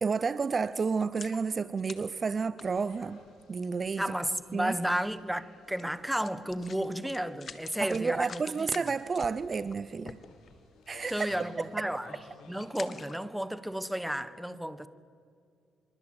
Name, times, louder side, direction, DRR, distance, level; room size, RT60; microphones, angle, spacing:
voice 1, 0.0-3.2 3.5-4.0 4.5-4.7 7.8-10.2 10.9-11.3, right 5 dB, 35° right, 0.7 m, -31 dB
sound 1, 0.6-3.3 4.1-4.2 4.6-4.7 5.7-5.8 6.1-10.7 11.2-11.4 11.7-12.0 12.6-13.5 14.0-14.1, left 6 dB, 45° left, 1.8 m, -48 dB
sound 2, 2.6-12.7, left 4 dB, 85° left, 7.3 m, -57 dB
voice 2, 4.0-8.9 11.1-12.2 12.5-14.9, right 1 dB, 5° right, 1.3 m, -33 dB
25.0 x 23.0 x 8.9 m
cardioid pair, 90°, 0 cm